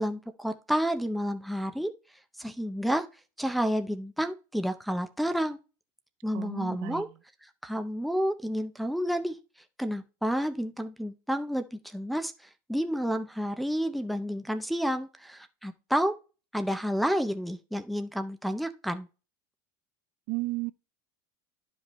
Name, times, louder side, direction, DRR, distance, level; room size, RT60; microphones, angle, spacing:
voice 1, 0.0-1.9 2.4-3.0 3.4-5.6 6.2-7.1 7.6-9.4 9.8-12.3 12.7-16.1 16.5-19.1, equal, ahead, 0.5 m, -30 dB
voice 2, 6.3-7.1 20.3-20.7, right 22 dB, 55° right, 0.4 m, -33 dB
11.5 x 5.2 x 3.0 m
cardioid pair, 165°, 11 cm